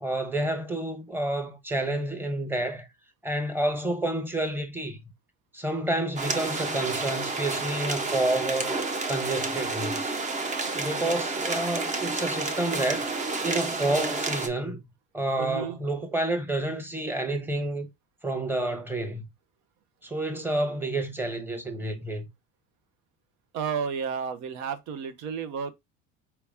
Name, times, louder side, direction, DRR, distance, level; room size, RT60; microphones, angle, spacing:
voice 1, 0.0-2.9 3.2-5.0 5.5-8.8 9.1-10.2 10.7-13.1 13.4-14.8 15.1-17.9 18.2-19.3 20.0-22.3, right 1 dB, 5° right, 1.1 m, -29 dB
sound 1, 6.2-14.5, right 3 dB, 25° right, 0.8 m, -30 dB
voice 2, 15.4-15.8 23.5-25.7, right 6 dB, 65° right, 1.0 m, -32 dB
4.6 x 3.0 x 3.5 m
cardioid pair, 125°, 29 cm